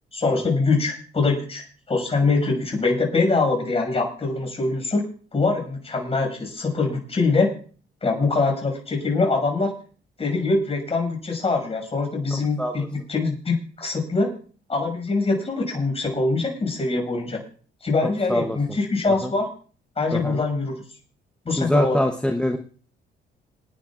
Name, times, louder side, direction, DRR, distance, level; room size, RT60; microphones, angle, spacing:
voice 1, 0.1-5.0 5.3-7.5 8.0-9.7 10.2-14.3 14.7-17.4 17.8-19.5 20.0-20.8 21.4-22.0, left 3 dB, 30° left, 1 dB, 6.3 m, -23 dB
voice 2, 18.0-18.6 19.2-19.3 20.1-20.4 21.6-22.6, left 1 dB, 5° left, 6 dB, 0.8 m, -24 dB
27.5 x 10.5 x 2.5 m, 0.41 s
cardioid pair, 90°, 20 cm